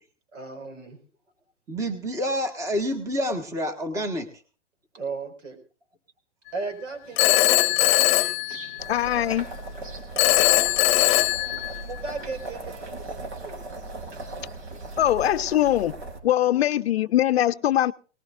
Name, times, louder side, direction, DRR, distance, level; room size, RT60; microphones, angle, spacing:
voice 1, 0.3-1.0 4.9-5.6 6.5-8.1 10.1-10.2 11.0-13.6 16.4-16.8, right 4 dB, 85° right, 5 dB, 5.0 m, -37 dB
voice 2, 1.7-4.3, equal, 10° right, 7 dB, 1.4 m, -28 dB
sound 1, 7.0-15.9, right 2 dB, 45° right, 3.4 m, -48 dB
Telephone, 7.2-9.1 10.2-12.1, left 17 dB, 30° left, 1.1 m, -21 dB
sound 2, 8.8-16.2, right 2 dB, 65° right, 4.1 m, -38 dB
voice 3, 8.9-9.5 15.0-15.9 16.2-17.9, left 12 dB, 60° left, 13 dB, 0.6 m, -22 dB
20.0 x 19.5 x 2.5 m, 0.38 s
hypercardioid pair, 150°, 36 cm